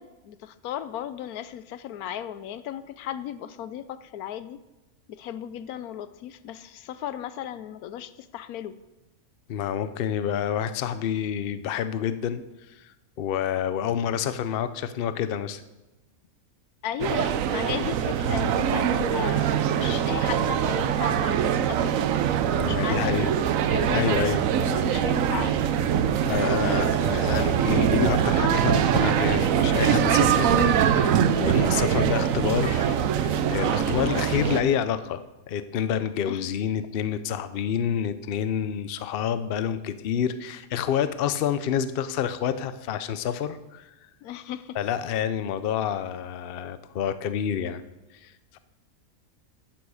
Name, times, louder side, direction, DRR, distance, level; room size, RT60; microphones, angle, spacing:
voice 1, 0.0-4.6 5.1-8.8 16.8-21.9 22.6-23.4 23.7-25.6 26.6-27.2 33.9-34.4 36.3-36.4 44.2-44.8, left 10 dB, 90° left, 14 dB, 1.1 m, -36 dB
voice 2, 9.5-12.4 12.7-15.6 22.5-23.3 23.9-24.4 26.2-35.2 35.5-43.9 44.7-47.8 48.2-48.6, left 9 dB, 55° left, 12 dB, 0.6 m, -28 dB
sound 1, 17.0-34.6, right 9 dB, 70° right, 1.0 m, -23 dB
12.0 x 8.9 x 4.8 m, 1.0 s
omnidirectional pair, 1.5 m